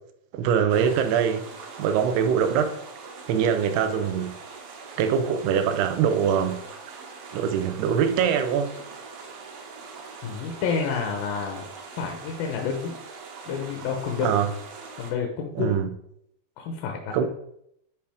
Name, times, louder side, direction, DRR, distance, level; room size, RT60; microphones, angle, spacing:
voice 1, 0.3-1.4 1.8-2.8 3.3-4.3 5.0-6.6 7.3-8.8 14.2-14.5 15.6-15.9 17.1-17.3, right 7 dB, 85° right, 2.8 m, -23 dB
sound 1, 0.7-15.1, right 4 dB, 70° right, 2.8 m, -42 dB
voice 2, 10.2-11.6 11.9-12.9 13.5-14.3 15.0-15.8 16.6-17.1, left 6 dB, 75° left, 2.5 m, -29 dB
10.5 x 4.8 x 3.5 m
omnidirectional pair, 4.5 m